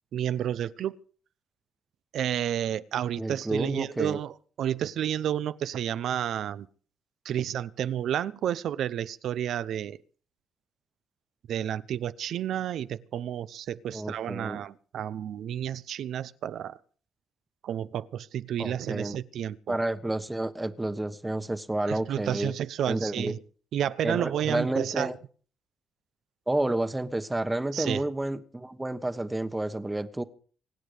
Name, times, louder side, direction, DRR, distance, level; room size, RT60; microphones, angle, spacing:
voice 1, 0.1-1.0 2.1-6.7 7.2-10.0 11.5-16.8 17.6-19.8 21.9-23.4 23.7-25.1 27.7-28.0, right 10 dB, 70° right, 0.7 m, -31 dB
voice 2, 3.2-4.2 13.9-14.6 18.6-19.2 19.7-22.5 22.9-23.3 24.0-25.1 26.5-30.2, right 1 dB, 10° right, 1.2 m, -30 dB
25.0 x 9.3 x 5.1 m
cardioid pair, 90°, 0 cm